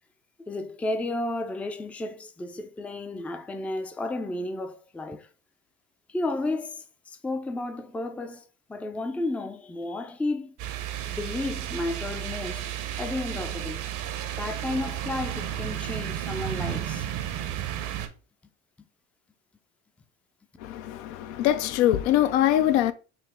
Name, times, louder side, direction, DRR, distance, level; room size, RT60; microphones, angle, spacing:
voice 1, 0.5-5.3 6.1-10.6 11.1-12.7 13.0-13.9 14.3-17.1, left 2 dB, 5° left, 0.3 m, -32 dB
sound 1, 10.6-18.1, right 11 dB, 65° right, 0.8 m, -33 dB
voice 2, 20.6-22.9, left 12 dB, 75° left, 0.5 m, -23 dB
5.6 x 2.0 x 3.4 m
supercardioid pair, 85°, 34 cm